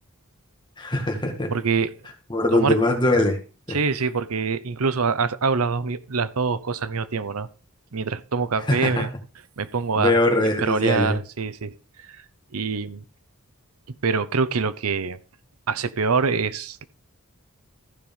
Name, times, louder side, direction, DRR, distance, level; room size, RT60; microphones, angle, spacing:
voice 1, 0.8-1.5 2.3-3.4 3.7-3.8 8.7-9.0 10.0-11.2, left 2 dB, 20° left, 3 dB, 2.1 m, -21 dB
voice 2, 1.5-1.9 2.5-2.8 3.7-7.5 7.9-9.1 9.6-10.2 10.6-11.7 12.1-12.2 12.5-13.0 14.0-15.2 15.7-16.8, right 5 dB, 80° right, 15 dB, 0.8 m, -24 dB
14.5 x 5.1 x 5.5 m, 0.36 s
head